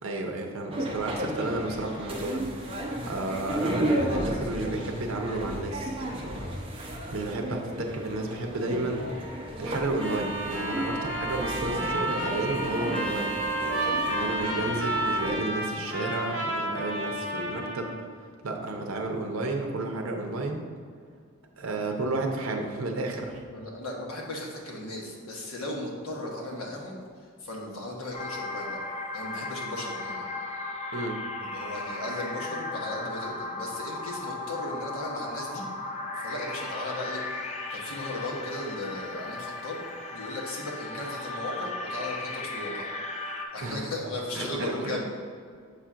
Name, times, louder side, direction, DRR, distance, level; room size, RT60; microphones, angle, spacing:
voice 1, 0.0-2.4 3.1-6.0 6.2-7.6 7.9-9.0 9.6-13.3 14.1-17.9 18.4-20.7 21.6-23.4 30.9-31.1 43.6-43.8 44.4-45.0, right 2 dB, 70° right, 2 dB, 0.7 m, -32 dB
sound 1, 0.7-15.4, right 1 dB, 25° right, 0.6 m, -33 dB
Trumpet, 10.0-18.0, right 1 dB, 55° left, 1.3 m, -32 dB
voice 2, 23.5-28.8 29.1-30.2 31.4-35.6 36.1-39.8 40.1-42.9 43.5-45.0, left 1 dB, 85° left, -2 dB, 1.2 m, -36 dB
sound 2, 28.1-43.4, left 2 dB, 30° left, 0.5 m, -36 dB
6.9 x 2.5 x 5.6 m, 2.1 s
head